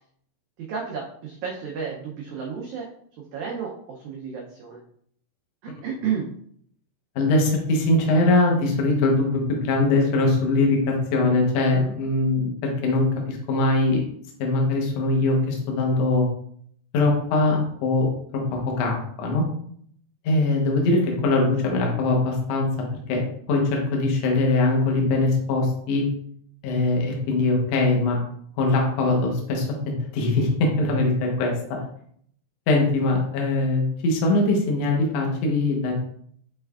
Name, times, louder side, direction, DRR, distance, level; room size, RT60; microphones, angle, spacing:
voice 1, 0.6-2.9 3.2-4.8 5.6-6.4 11.8-11.9, right 6 dB, 85° right, -2 dB, 1.7 m, -32 dB
voice 2, 7.1-14.0 14.4-16.2 16.9-18.1 18.5-19.4 20.2-22.7 23.1-23.2 23.5-26.0 26.6-28.2 28.6-31.5 32.7-35.9, left 2 dB, 75° left, 0 dB, 1.6 m, -22 dB
6.6 x 3.2 x 2.3 m, 0.65 s
omnidirectional pair, 4.2 m